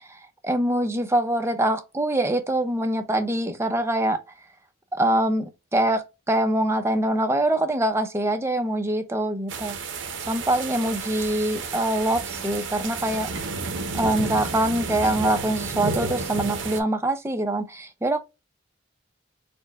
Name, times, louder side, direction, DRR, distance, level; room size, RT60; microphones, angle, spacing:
voice 1, 0.0-4.2 4.9-9.8 10.3-13.3 14.0-18.2, right 1 dB, 15° right, 0.6 m, -24 dB
sound 1, 9.5-16.8, right 4 dB, 65° right, 0.8 m, -31 dB
4.3 x 2.2 x 3.8 m
head